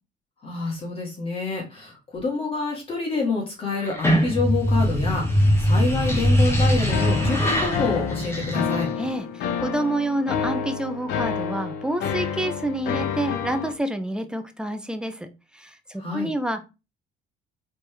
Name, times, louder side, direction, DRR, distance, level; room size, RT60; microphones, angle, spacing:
voice 1, 0.4-8.9 16.0-16.3, left 3 dB, 35° left, -1 dB, 2.1 m, -27 dB
sound 1, 3.8-9.1, equal, 15° left, 1.5 m, -22 dB
sound 2, 6.9-13.7, left 7 dB, 85° left, 0.9 m, -29 dB
voice 2, 9.0-15.3 15.5-16.6, right 1 dB, 5° right, 8 dB, 0.6 m, -28 dB
4.1 x 3.5 x 3.4 m, 0.28 s
cardioid pair, 110°, 17 cm